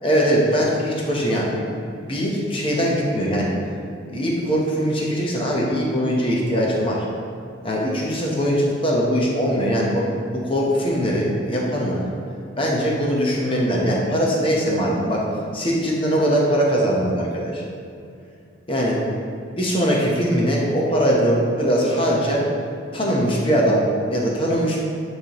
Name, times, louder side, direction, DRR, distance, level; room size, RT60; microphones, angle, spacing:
voice 1, 0.0-3.5 4.0-7.1 7.6-10.1 10.3-12.0 12.6-15.2 15.5-17.6 18.7-19.0 19.5-22.5 22.9-24.8, equal, 30° left, -3 dB, 0.9 m, -21 dB
9.4 x 3.4 x 3.0 m, 2.3 s
head